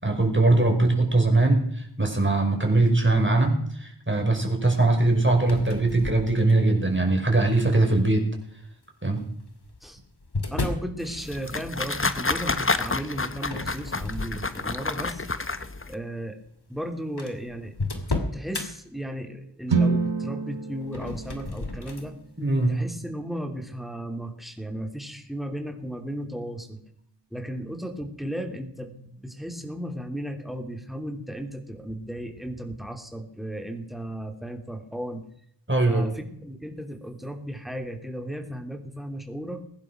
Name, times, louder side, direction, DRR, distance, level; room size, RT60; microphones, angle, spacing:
voice 1, 0.0-1.7 2.0-8.3 9.0-9.2 22.4-22.8 35.7-36.1, right 2 dB, 25° right, 2 dB, 5.6 m, -21 dB
sound 1, 5.4-6.8 7.5-7.9 9.0-11.0 13.4-15.0 15.5-15.7 16.5-16.6 16.7-16.8 17.2-18.7 20.8-22.1, left 2 dB, 65° left, 2.5 m, -33 dB
voice 2, 10.5-15.2 15.9-16.4 16.7-17.7 18.3-22.1 22.7-26.8 27.3-35.3 35.9-39.6, equal, ahead, 5 dB, 3.1 m, -35 dB
sound 2, 11.0-15.9, left 3 dB, 30° left, 1.0 m, -29 dB
sound 3, 19.7-23.7, right 4 dB, 85° right, 1.4 m, -29 dB
21.0 x 11.0 x 6.1 m, 0.67 s
wide cardioid pair, 40°, 43 cm